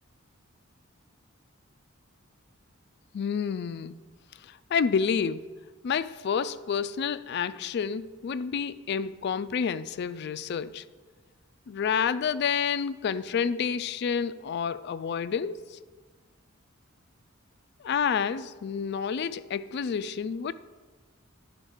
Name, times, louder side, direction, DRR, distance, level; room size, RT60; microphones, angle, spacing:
voice 1, 3.1-4.0 4.4-5.5 5.8-10.8 11.7-15.8 17.8-20.5, left 6 dB, 55° left, 0.3 m, -29 dB
10.5 x 4.3 x 6.4 m
head